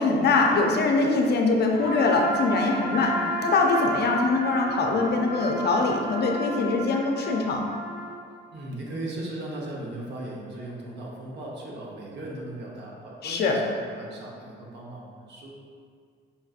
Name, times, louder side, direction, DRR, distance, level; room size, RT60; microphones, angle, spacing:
voice 1, 0.0-3.1 3.4-7.6 13.2-13.6, left 3 dB, 55° left, 1 dB, 0.5 m, -23 dB
Trumpet, 1.7-8.2, right 1 dB, 35° right, 1.5 m, -33 dB
voice 2, 8.5-13.6 14.0-15.6, right 1 dB, 60° right, -3 dB, 0.9 m, -37 dB
5.1 x 2.5 x 2.4 m, 2.1 s
cardioid pair, 90°, 20 cm